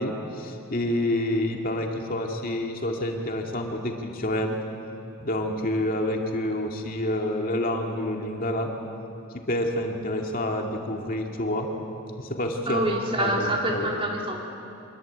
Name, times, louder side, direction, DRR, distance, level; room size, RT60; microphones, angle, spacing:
voice 1, 0.0-4.6 5.2-8.7 9.3-11.7 12.2-12.9 13.2-13.9, left 1 dB, 45° left, 2 dB, 2.3 m, -28 dB
voice 2, 12.6-14.4, right 1 dB, 25° right, 0 dB, 3.3 m, -26 dB
25.0 x 22.0 x 8.9 m, 2.9 s
head